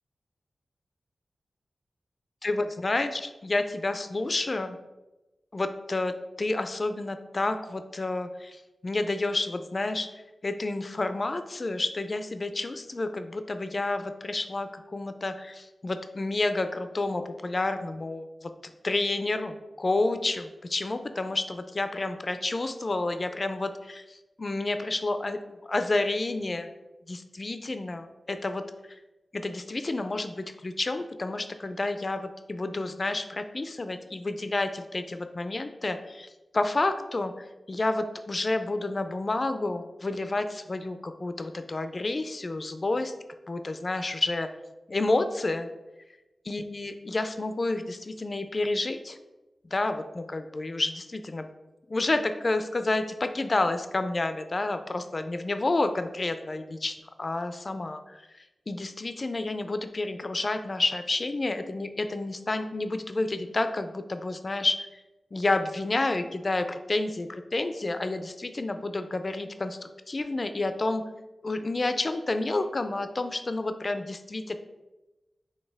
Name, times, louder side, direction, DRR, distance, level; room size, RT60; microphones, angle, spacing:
voice 1, 2.4-4.8 5.5-10.1 10.4-18.5 18.8-26.7 27.1-28.6 29.3-37.3 37.7-43.1 43.5-44.5 44.9-45.7 46.5-49.2 49.7-51.5 51.9-58.2 58.7-64.9 65.3-69.8 70.1-71.0 71.4-74.6, left 2 dB, 45° left, 9 dB, 0.3 m, -30 dB
4.3 x 3.1 x 3.4 m, 1.1 s
cardioid pair, 55°, 0 cm